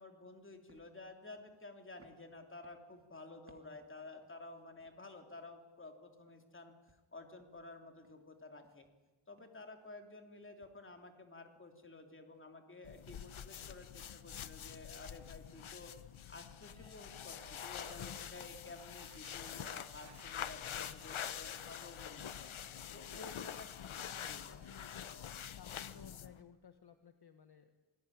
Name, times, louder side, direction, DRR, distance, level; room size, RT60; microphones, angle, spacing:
voice 1, 0.0-6.8 7.1-8.9 9.3-15.9 16.3-22.3 22.9-23.6 24.3-24.4, left 2 dB, 25° left, 5 dB, 3.1 m, -52 dB
sound 1, 0.7-5.2 5.6-10.2 10.4-12.8 13.3-13.5 13.8-15.2 15.6-16.4 16.8-17.1 18.1-18.3 18.7-19.1 19.4-19.5 19.8-20.2, right 3 dB, 25° right, 2.9 m, -72 dB
sound 2, 12.8-26.4, left 9 dB, 85° left, 1.2 m, -46 dB
sound 3, 16.8-18.0 18.5-18.6 19.0-22.0 22.3-25.4 25.7-26.0 26.4-26.5, right 5 dB, 70° right, 4.6 m, -63 dB
voice 2, 22.1-22.5 23.1-25.1 25.4-27.7, left 6 dB, 55° left, 8 dB, 1.4 m, -58 dB
27.0 x 20.5 x 9.9 m, 1.1 s
wide cardioid pair, 170°, 47 cm